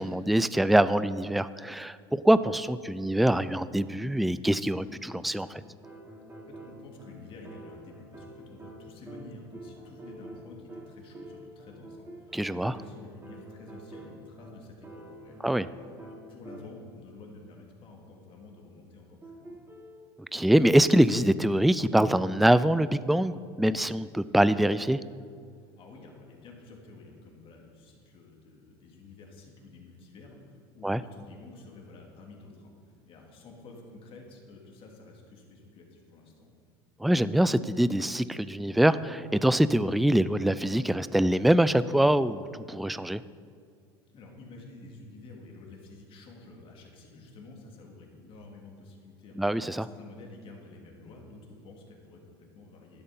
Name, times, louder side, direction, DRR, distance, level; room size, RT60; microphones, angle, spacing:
voice 1, 0.0-5.6 12.3-12.8 15.4-15.7 20.3-25.0 30.8-31.0 37.0-43.2 49.4-49.9, right 1 dB, ahead, 15 dB, 0.3 m, -24 dB
sound 1, 5.4-17.0 19.2-20.0, right 1 dB, 20° right, 2.9 m, -47 dB
voice 2, 6.5-15.6 16.0-19.6 25.8-36.6 44.1-49.4 49.7-53.0, left 2 dB, 45° left, 0 dB, 2.8 m, -50 dB
11.5 x 11.5 x 3.9 m, 2.2 s
hypercardioid pair, 85°, 13 cm